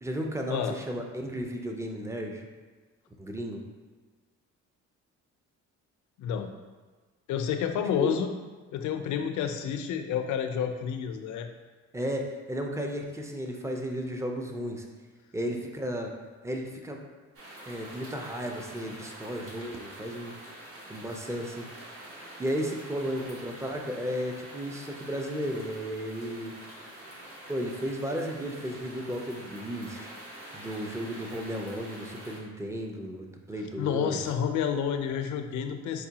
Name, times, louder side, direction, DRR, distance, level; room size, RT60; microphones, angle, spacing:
voice 1, 0.0-2.5 3.2-3.6 8.0-8.1 11.9-14.9 15.3-16.1 16.4-17.0 17.6-20.3 20.9-21.7 22.4-26.5 27.5-30.1 30.5-34.2, equal, 10° right, 2 dB, 0.4 m, -34 dB
voice 2, 6.2-6.5 7.3-8.3 8.7-11.5 33.8-36.1, left 8 dB, 75° left, 6 dB, 0.4 m, -29 dB
sound 1, 17.3-32.4, right 1 dB, 50° right, 1.0 m, -46 dB
4.7 x 2.2 x 2.8 m, 1.3 s
cardioid pair, 90°, 30 cm